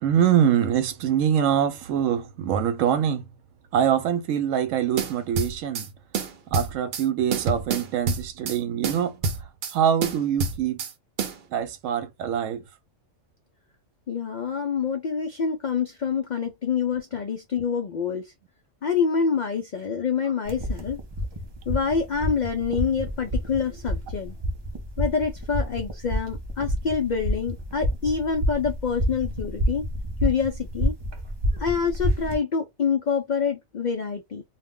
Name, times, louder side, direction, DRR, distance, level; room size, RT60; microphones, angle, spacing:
voice 1, 0.0-3.2 3.7-5.9 6.5-9.2 9.7-10.8 11.5-12.6, right 9 dB, 85° right, 1.0 m, -24 dB
sound 1, 5.0-5.9 6.1-7.0 7.3-8.6 8.8-9.7 10.0-10.9 11.2-11.4, right 4 dB, 60° right, 0.8 m, -28 dB
voice 2, 14.1-18.3 18.8-21.0 21.7-24.4 25.0-29.9 30.2-31.0 31.5-34.4, left 6 dB, 80° left, 0.4 m, -26 dB
sound 2, 20.5-32.4, equal, 40° right, 0.3 m, -29 dB
2.4 x 2.1 x 3.5 m
omnidirectional pair, 1.3 m